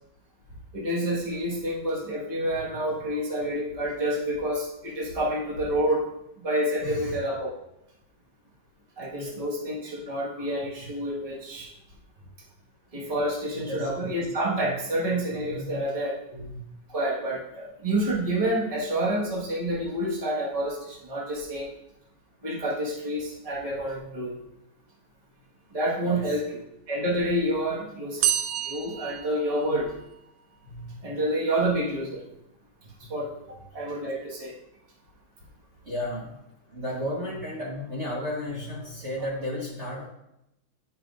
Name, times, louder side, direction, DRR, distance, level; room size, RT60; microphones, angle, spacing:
voice 1, 0.7-6.1 6.4-7.5 9.0-11.7 12.9-16.2 16.9-21.7 22.4-24.3 25.7-28.3 28.6-29.9 31.0-32.2 33.0-33.3 33.7-34.5, right 1 dB, 20° right, -5 dB, 1.4 m, -28 dB
voice 2, 6.8-7.2 9.2-9.4 10.4-10.5 10.8-10.9 13.5-14.0 14.6-14.8 15.3-15.8 16.3-16.6 26.0-26.4 29.7-29.8 30.6-31.0 33.0-33.1 35.8-36.4 36.7-40.1, left 1 dB, 40° right, -5 dB, 1.5 m, -34 dB
sound 1, 28.2-30.1, right 10 dB, 75° right, 0.8 m, -29 dB
10.5 x 5.7 x 2.5 m, 0.85 s
omnidirectional pair, 2.0 m